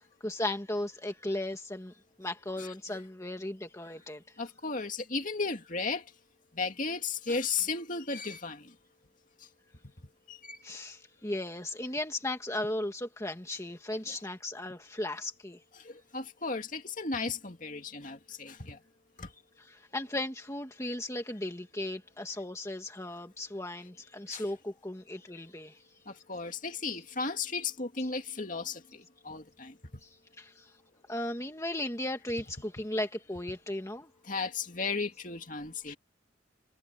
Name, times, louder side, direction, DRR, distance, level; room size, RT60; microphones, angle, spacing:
voice 1, 0.2-1.9 2.2-4.2 10.6-15.6 19.6-25.8 30.0-30.7 31.1-34.1, left 1 dB, 15° left, 1.8 m, -36 dB
voice 2, 2.6-3.0 4.4-6.0 6.5-8.7 10.3-10.6 15.8-18.8 19.2-19.3 24.3-24.4 26.1-29.7 34.2-36.0, left 4 dB, 40° left, 2.5 m, -35 dB
head